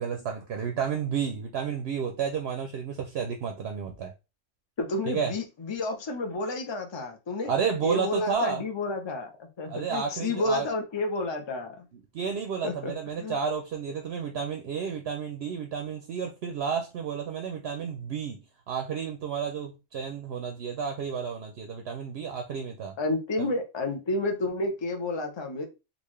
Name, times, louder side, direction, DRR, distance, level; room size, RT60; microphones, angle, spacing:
voice 1, 0.0-4.1 5.1-5.3 7.5-8.6 9.7-10.7 12.1-22.9 23.4-23.5, right 6 dB, 65° right, 0.8 m, -31 dB
voice 2, 4.8-7.5 7.8-11.9 12.6-12.9 13.2-13.4 23.0-25.7, left 2 dB, 30° left, 0.6 m, -30 dB
3.8 x 2.4 x 3.1 m
omnidirectional pair, 1.3 m